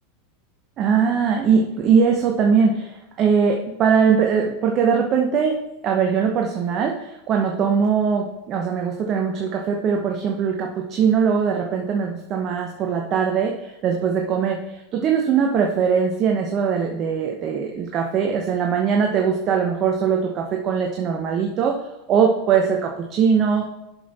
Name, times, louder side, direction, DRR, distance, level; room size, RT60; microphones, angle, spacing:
voice 1, 0.8-21.8 22.1-23.7, right 6 dB, 40° right, 1 dB, 0.9 m, -21 dB
7.6 x 5.4 x 4.1 m, 0.92 s
hypercardioid pair, 95°, 0 cm